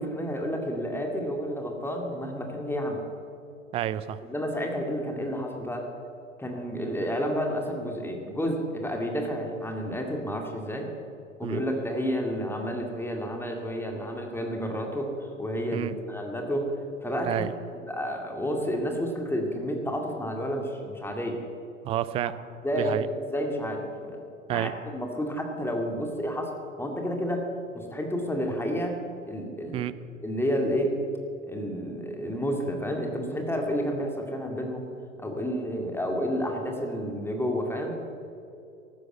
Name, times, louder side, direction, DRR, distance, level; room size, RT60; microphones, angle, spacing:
voice 1, 0.0-3.0 4.3-5.8 6.4-10.9 11.4-16.7 17.0-17.4 17.7-21.4 22.6-24.2 24.5-26.5 26.8-27.4 27.7-28.9 29.3-29.8 30.2-30.9 31.5-34.9 35.2-37.9, equal, 5° left, 2 dB, 2.2 m, -30 dB
voice 2, 3.7-4.2 11.4-11.6 15.7-15.9 17.3-17.5 21.8-22.3 22.8-23.1 24.5-24.7 29.7-29.9, right 13 dB, 15° right, 15 dB, 0.3 m, -29 dB
14.0 x 12.5 x 8.0 m, 2.6 s
figure-of-eight pair, 90°, 38 cm